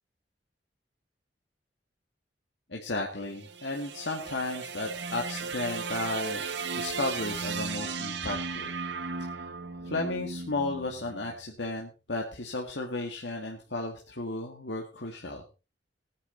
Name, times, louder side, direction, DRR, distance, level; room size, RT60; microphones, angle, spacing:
voice 1, 2.7-6.4 6.7-8.7 9.3-9.4 9.8-15.4, left 2 dB, 75° left, 0 dB, 2.0 m, -34 dB
sound 1, 3.2-11.5, right 4 dB, 75° right, 1.4 m, -36 dB
18.5 x 9.8 x 4.0 m, 0.32 s
head